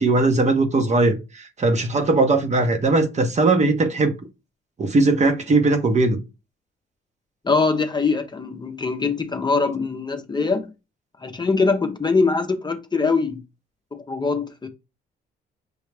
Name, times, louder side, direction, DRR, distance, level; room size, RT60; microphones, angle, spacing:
voice 1, 0.0-4.1 4.8-6.2, right 3 dB, 35° right, 0.9 m, -19 dB
voice 2, 7.4-10.7 11.2-13.4 13.9-14.7, left 4 dB, 20° left, 0.7 m, -22 dB
6.4 x 2.3 x 3.3 m
cardioid pair, 90°, 20 cm